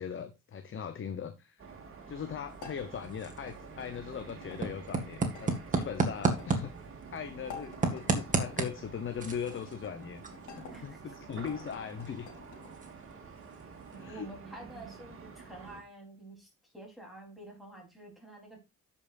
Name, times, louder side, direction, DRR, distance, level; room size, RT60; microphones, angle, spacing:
voice 1, 0.0-1.7 2.1-6.7 7.1-10.2 10.5-12.3 14.0-14.3, left 7 dB, 40° left, 10 dB, 0.9 m, -39 dB
sound 1, 1.6-15.8, right 5 dB, 45° right, 2.1 m, -49 dB
sound 2, 2.5-14.2, right 3 dB, 25° right, 1.9 m, -36 dB
sound 3, 2.6-4.6 5.3-6.7 7.4-8.6 9.4-10.8 11.4-12.7, left 5 dB, 80° left, 3.0 m, -50 dB
voice 2, 13.9-18.6, right 2 dB, ahead, -2 dB, 3.8 m, -49 dB
13.5 x 5.6 x 2.6 m, 0.24 s
cardioid pair, 90°, 30 cm